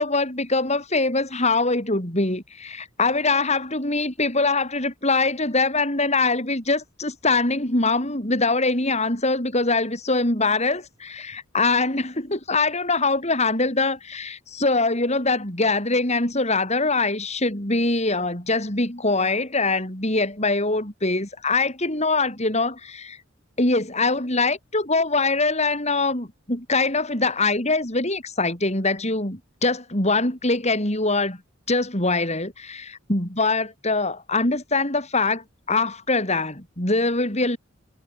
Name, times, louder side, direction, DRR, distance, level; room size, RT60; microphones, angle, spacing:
voice 1, 0.0-23.2 23.6-31.4 31.7-37.6, left 3 dB, 35° left, 6.7 m, -23 dB
head